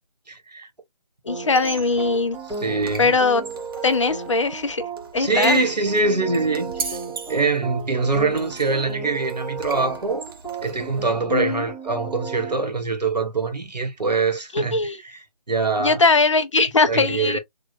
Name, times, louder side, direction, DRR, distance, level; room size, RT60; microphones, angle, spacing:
voice 1, 0.3-0.7 2.6-3.1 5.2-7.0 7.3-10.2 10.6-14.8 15.0-15.2 15.5-16.0 16.9-17.4, right 3 dB, 80° right, 1.5 m, -23 dB
voice 2, 1.2-2.4 3.0-3.4 3.8-4.8 5.1-5.6 11.3-11.6 14.5-15.0 15.8-17.4, left 3 dB, 45° left, 0.6 m, -20 dB
sound 1, 1.3-12.6, right 4 dB, 5° left, 0.6 m, -35 dB
Squeak, 1.4-11.0, right 4 dB, 35° right, 0.8 m, -39 dB
3.6 x 2.4 x 2.7 m
figure-of-eight pair, 155°, 21 cm